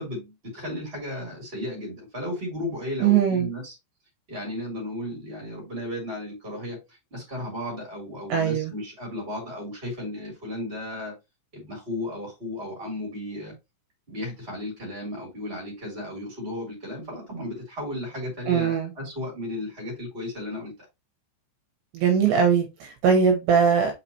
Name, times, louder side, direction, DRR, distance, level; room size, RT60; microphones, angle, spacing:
voice 1, 0.0-3.7 4.3-11.1 11.5-13.5 14.1-20.7, left 1 dB, 15° right, 2.3 m, -34 dB
voice 2, 3.0-3.5 8.3-8.7 18.5-18.9 21.9-23.9, right 7 dB, 70° right, 2.9 m, -21 dB
5.8 x 5.7 x 2.8 m
omnidirectional pair, 5.9 m